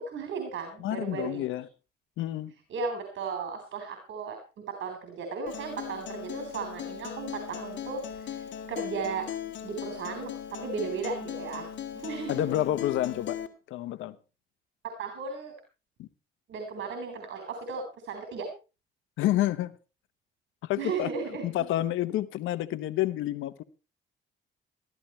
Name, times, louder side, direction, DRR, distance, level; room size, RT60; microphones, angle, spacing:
voice 1, 0.0-1.4 2.7-4.4 4.7-9.3 9.6-11.7 12.0-12.5 14.8-15.5 16.5-18.5 20.8-21.4, right 5 dB, 70° right, 3.6 m, -35 dB
voice 2, 0.8-1.7 2.2-2.5 12.3-13.4 13.7-14.2 16.0-16.1 19.2-19.7 20.6-21.1 21.4-23.6, left 13 dB, 90° left, 1.0 m, -29 dB
Acoustic guitar, 5.5-13.5, left 9 dB, 70° left, 1.9 m, -38 dB
13.5 x 13.0 x 4.3 m
cardioid pair, 90°, 20 cm